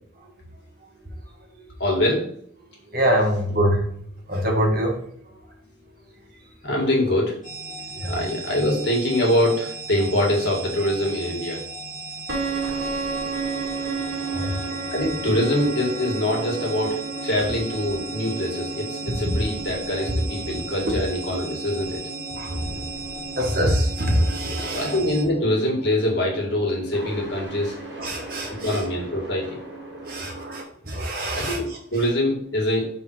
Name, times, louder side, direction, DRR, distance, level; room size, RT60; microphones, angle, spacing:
voice 1, 1.8-2.2 6.6-7.3 8.1-11.6 14.9-22.0 24.4-27.7 28.6-29.6 31.3-32.9, left 1 dB, 60° left, -2 dB, 2.0 m, -24 dB
voice 2, 2.9-3.8 4.3-5.0 7.9-8.1 14.2-14.6 20.9-21.0 22.3-22.8 23.4-24.9 28.0-28.8 30.0-31.6, equal, 50° right, 0 dB, 1.4 m, -24 dB
sound 1, 7.4-25.2, right 2 dB, 40° left, 1.8 m, -37 dB
sound 2, 12.3-30.6, right 4 dB, 65° right, 1.5 m, -34 dB
5.7 x 3.6 x 4.7 m, 0.62 s
head